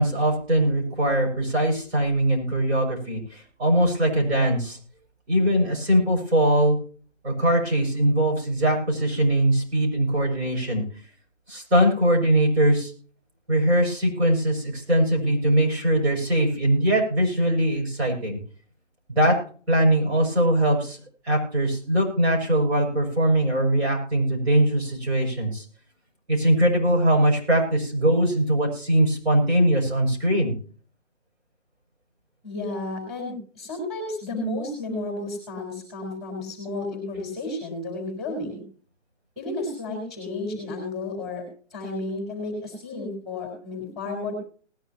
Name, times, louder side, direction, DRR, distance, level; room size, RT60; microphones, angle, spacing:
voice 1, 0.0-4.8 5.3-6.8 7.2-10.8 11.5-12.9 13.5-18.4 19.1-19.4 19.7-21.0 21.2-25.6 26.3-30.5, right 1 dB, 60° right, 2 dB, 6.7 m, -21 dB
voice 2, 32.4-38.6 39.4-41.4 41.7-44.3, left 2 dB, ahead, -2 dB, 4.1 m, -32 dB
19.5 x 10.5 x 2.9 m, 0.42 s
hypercardioid pair, 165°, 37 cm